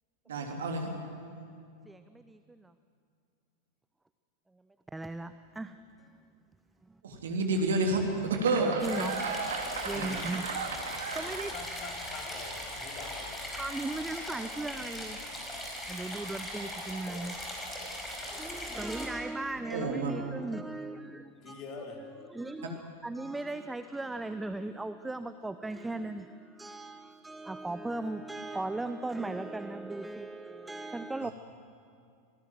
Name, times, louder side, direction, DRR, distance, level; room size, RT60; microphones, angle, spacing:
voice 1, 0.3-0.9 7.0-11.5 19.7-20.1 22.6-22.7 31.2-31.3, right 3 dB, 65° right, 2 dB, 3.4 m, -31 dB
voice 2, 1.9-2.7 4.9-6.1 6.8-6.9 8.6-9.2 9.9-10.6 11.1-11.5 13.6-15.2 15.9-17.4 18.2-21.6 22.3-31.3, right 2 dB, 10° right, 12 dB, 0.6 m, -37 dB
sound 1, 8.8-19.1, left 1 dB, 10° left, 5.2 m, -40 dB
voice 3, 11.3-13.4 21.4-22.1, left 4 dB, 35° left, 1 dB, 4.0 m, -44 dB
26.5 x 18.5 x 7.8 m, 2.4 s
figure-of-eight pair, 90°, 0 cm